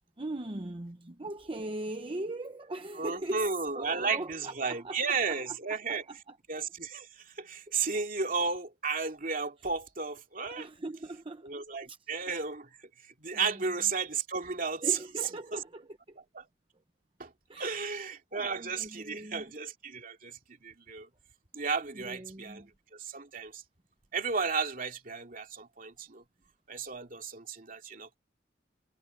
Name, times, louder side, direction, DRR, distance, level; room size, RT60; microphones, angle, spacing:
voice 1, 0.2-5.0 5.3-5.6 5.9-6.4 10.5-11.5 11.9-12.0 13.3-13.6 14.8-16.2 17.5-17.8 18.3-19.5 21.8-22.7, right 2 dB, 30° right, 0.9 m, -40 dB
voice 2, 3.0-6.1 6.5-10.7 11.4-12.7 13.2-15.0 15.5-15.6 16.3-16.4 17.2-17.3 17.6-21.1 21.5-22.6 22.9-23.6 24.1-26.2 26.7-28.2, right 5 dB, 50° right, 2.6 m, -33 dB
head